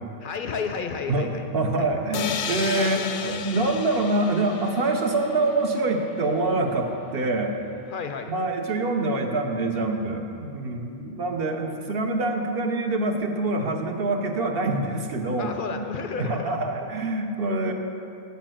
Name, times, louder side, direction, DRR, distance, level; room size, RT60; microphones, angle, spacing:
voice 1, 0.2-1.5 1.8-2.0 2.7-3.2 7.9-8.3 10.3-10.6 15.4-16.9, left 5 dB, 60° left, 6 dB, 0.6 m, -33 dB
voice 2, 1.1-7.6 8.3-15.9 16.2-17.7, right 2 dB, 60° right, 3 dB, 1.0 m, -25 dB
sound 1, 2.1-5.9, left 7 dB, 85° left, 0.9 m, -33 dB
7.1 x 6.6 x 7.5 m, 2.6 s
omnidirectional pair, 1.2 m